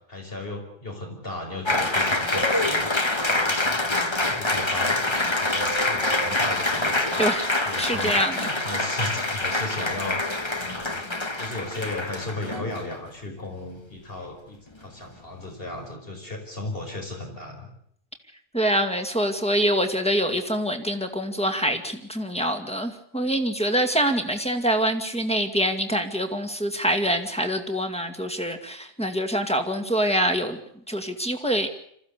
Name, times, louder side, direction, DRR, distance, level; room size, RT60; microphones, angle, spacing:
voice 1, 0.1-3.6 3.9-7.2 7.7-10.2 10.6-11.0 11.4-17.7, left 2 dB, 65° left, 2 dB, 5.4 m, -36 dB
Applause, 1.7-13.0, left 2 dB, 25° left, 1.6 m, -25 dB
voice 2, 7.8-8.5 18.5-30.6 30.9-31.7, equal, 5° left, 6 dB, 2.2 m, -25 dB
26.5 x 15.0 x 8.3 m, 0.70 s
omnidirectional pair, 1.0 m